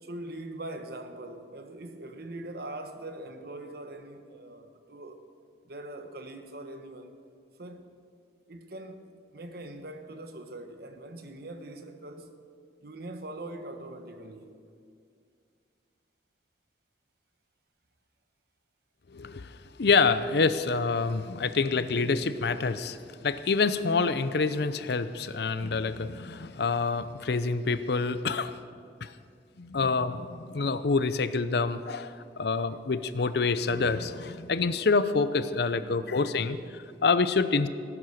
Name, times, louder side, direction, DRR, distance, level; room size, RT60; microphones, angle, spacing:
voice 1, 0.0-5.3 5.6-7.2 7.6-7.9 8.5-9.0 9.3-12.4 12.8-14.6 19.2-19.3 35.7-36.8, right 1 dB, 60° right, 1.2 m, -42 dB
voice 2, 19.1-19.5 19.8-28.5 29.0-29.1 29.6-36.6 37.0-37.7, left 4 dB, 65° left, 0.6 m, -27 dB
17.0 x 9.9 x 6.6 m
head